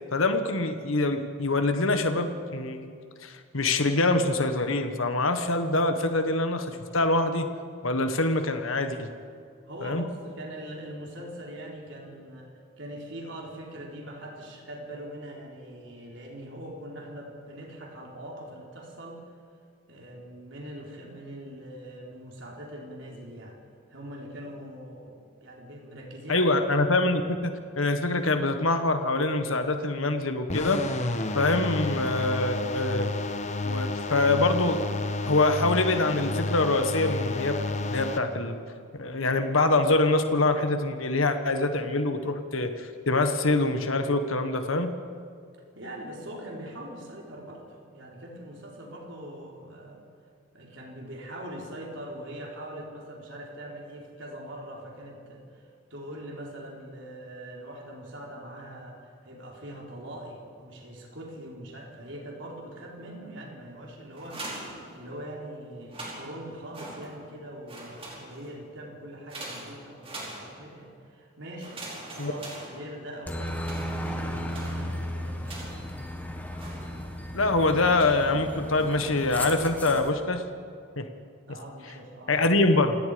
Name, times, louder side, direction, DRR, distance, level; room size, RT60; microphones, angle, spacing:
voice 1, 0.1-2.9 3.2-7.5 7.8-9.1 9.8-10.0 26.3-30.8 31.3-33.1 33.6-34.8 35.2-38.6 39.0-44.9 72.2-72.3 77.3-80.4 81.0-81.1 82.3-83.0, left 2 dB, 75° left, 7 dB, 1.5 m, -25 dB
voice 2, 9.7-19.2 19.9-23.6 23.9-26.5 26.8-26.9 45.7-50.0 50.5-71.8 72.1-73.6 74.0-75.8 81.5-82.4, right 1 dB, 60° right, -1 dB, 4.4 m, -42 dB
sound 1, 30.5-38.2, left 2 dB, 35° left, 1.1 m, -31 dB
sound 2, 64.1-65.4 65.8-67.4 67.6-68.6 69.3-70.9 71.6-73.2 73.6-76.0 76.6-77.3 78.0-78.3 78.7-79.2, right 2 dB, 25° right, 4.8 m, -43 dB
Aircraft, 73.3-80.1, equal, 10° left, 1.6 m, -35 dB
28.5 x 17.5 x 5.2 m, 2.3 s
head